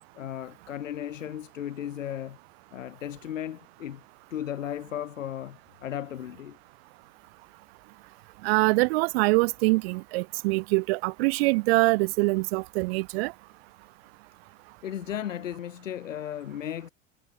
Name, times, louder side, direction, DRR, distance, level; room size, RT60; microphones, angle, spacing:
voice 1, 0.1-2.4 2.7-4.0 4.3-6.6 14.8-16.9, left 10 dB, 75° left, 1.7 m, -35 dB
voice 2, 8.4-13.3, right 26 dB, 50° right, 0.6 m, -24 dB
figure-of-eight pair, 75°, 39 cm